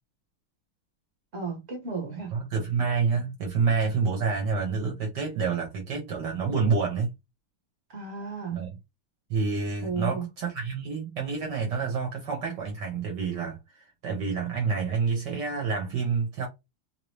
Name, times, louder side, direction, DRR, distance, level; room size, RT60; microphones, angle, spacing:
voice 1, 1.3-2.4 7.9-8.6 9.8-10.3, right 5 dB, 35° right, 1.2 m, -33 dB
voice 2, 2.3-7.1 8.5-8.8 9.3-16.5, right 5 dB, 60° right, 1.4 m, -28 dB
3.4 x 2.9 x 3.0 m
omnidirectional pair, 2.4 m